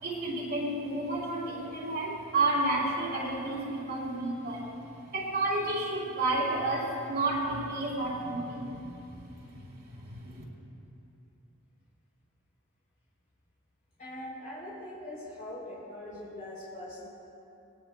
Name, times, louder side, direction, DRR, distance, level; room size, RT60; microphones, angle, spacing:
voice 1, 0.0-4.7 5.1-10.4, right 2 dB, 55° right, -4 dB, 4.0 m, -31 dB
voice 2, 14.0-17.1, left 1 dB, 40° left, -7 dB, 3.2 m, -42 dB
22.0 x 18.0 x 2.2 m, 2.8 s
head